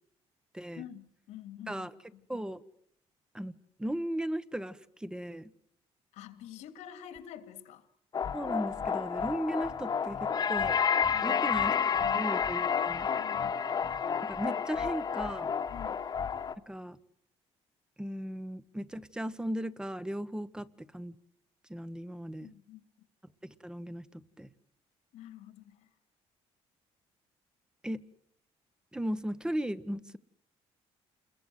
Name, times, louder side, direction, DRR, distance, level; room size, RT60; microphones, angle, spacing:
voice 1, 0.7-1.9 2.1-2.2 6.1-7.9 11.1-12.3 13.2-13.6 15.7-16.0 22.4-22.8 25.1-25.9, left 11 dB, 90° left, 10 dB, 3.0 m, -48 dB
voice 2, 2.3-2.6 3.3-3.5 3.8-5.5 8.3-10.8 11.2-11.8 12.1-13.1 14.2-15.5 16.7-17.0 18.0-21.2 21.7-22.5 23.4-24.5 27.8-28.0 28.9-30.2, equal, 5° right, 15 dB, 1.1 m, -36 dB
sound 1, 8.1-16.5, left 7 dB, 35° left, 1.4 m, -30 dB
28.5 x 21.5 x 8.1 m, 0.70 s
cardioid pair, 125°, 11 cm